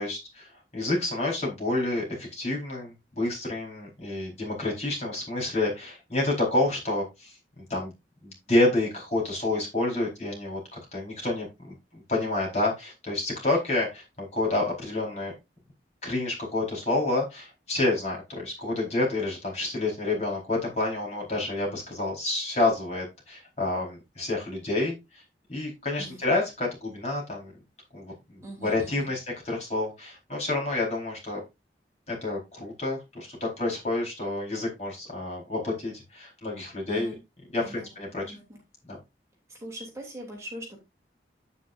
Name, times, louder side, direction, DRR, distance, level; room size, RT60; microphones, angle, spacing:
voice 1, 0.0-7.9 8.2-15.3 16.0-25.2 25.5-27.5 27.9-31.4 32.1-37.1 37.5-38.4 38.9-39.0, left 2 dB, 40° left, -2 dB, 4.6 m, -29 dB
voice 2, 28.4-29.1 36.9-37.2 37.6-37.9 38.2-38.6 39.6-40.8, right 1 dB, 15° right, -1 dB, 3.1 m, -41 dB
9.1 x 9.0 x 2.6 m, 0.24 s
head